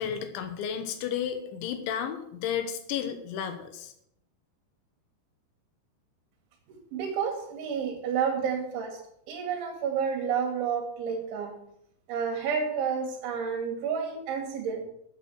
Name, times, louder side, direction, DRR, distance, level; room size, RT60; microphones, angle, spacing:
voice 1, 0.0-3.9, left 8 dB, 75° left, 8 dB, 3.5 m, -32 dB
voice 2, 6.7-9.0 9.3-11.5 12.1-14.8, right 6 dB, 75° right, 4 dB, 4.7 m, -30 dB
12.5 x 8.9 x 6.5 m, 0.73 s
omnidirectional pair, 5.4 m